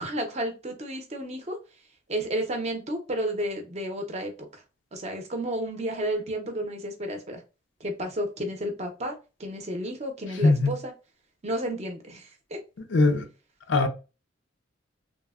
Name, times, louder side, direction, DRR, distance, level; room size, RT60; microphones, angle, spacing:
voice 1, 0.0-1.6 2.1-4.6 4.9-7.4 7.8-9.1 9.4-10.9 11.4-12.6, right 1 dB, 35° right, 0.6 m, -32 dB
voice 2, 10.4-10.7 12.9-13.2 13.7-13.9, left 3 dB, 65° left, 0.4 m, -20 dB
3.0 x 2.0 x 2.3 m
head